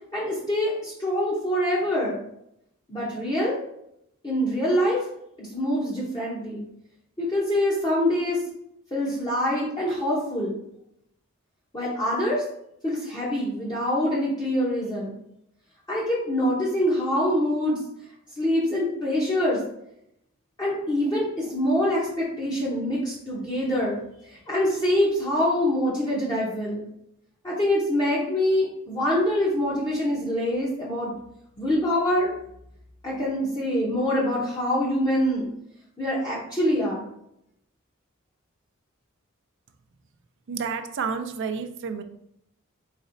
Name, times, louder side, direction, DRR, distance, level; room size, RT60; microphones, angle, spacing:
voice 1, 0.1-2.2 2.9-3.6 4.2-5.0 5.4-6.6 7.2-8.4 8.9-10.6 11.7-12.4 12.8-15.1 15.9-17.8 18.4-19.6 20.6-26.8 27.4-31.2 31.6-32.3 33.0-35.5 36.0-37.0, left 1 dB, 20° left, -7 dB, 0.8 m, -25 dB
voice 2, 40.5-42.0, right 5 dB, 60° right, 8 dB, 0.4 m, -30 dB
4.1 x 3.9 x 2.6 m, 0.78 s
head